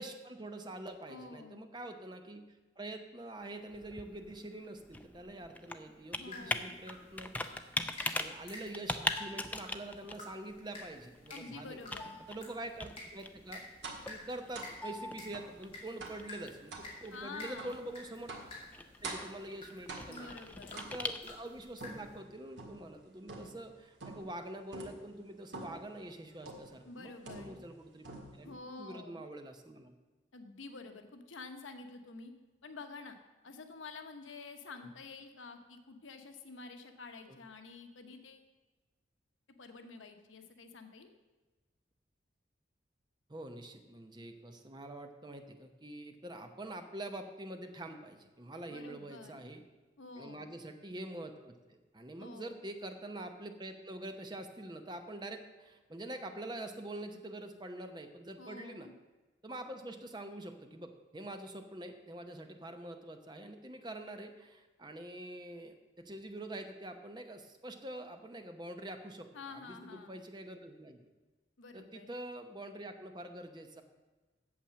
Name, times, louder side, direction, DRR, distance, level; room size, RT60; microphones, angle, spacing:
voice 1, 0.0-2.5 2.8-7.4 8.1-11.8 12.3-13.6 14.1-18.3 19.0-20.3 20.7-28.1 28.3-29.9 43.3-49.6 50.2-51.6 51.9-58.9 59.4-71.1 71.7-73.8, right 1 dB, 20° right, 6 dB, 0.8 m, -45 dB
voice 2, 1.1-1.6 6.1-6.8 11.3-12.2 17.1-17.7 20.1-20.9 26.8-27.6 28.4-29.2 30.3-32.3 32.6-33.2 33.4-38.5 39.6-41.1 48.7-49.4 50.0-50.5 52.2-52.6 58.4-58.9 69.3-70.2 71.6-72.1, left 3 dB, 85° left, 6 dB, 1.0 m, -49 dB
Computer keyboard, 3.4-21.7, left 2 dB, 10° left, 0.4 m, -42 dB
sound 1, 6.3-22.2, left 2 dB, 30° left, 2.6 m, -52 dB
sound 2, 13.8-14.1 14.5-14.8 15.3-15.6 16.0-16.3 16.7-16.9 17.6-17.8 18.3-18.6 19.0-19.4 19.9-20.3 20.8-21.3 21.8-22.9 23.3-23.7 24.0-24.4 24.7-25.0 25.5-25.9 26.5-26.8 27.3-27.8 28.0-28.5, right 3 dB, 70° right, 1.8 m, -46 dB
8.5 x 7.4 x 7.4 m, 1.2 s
head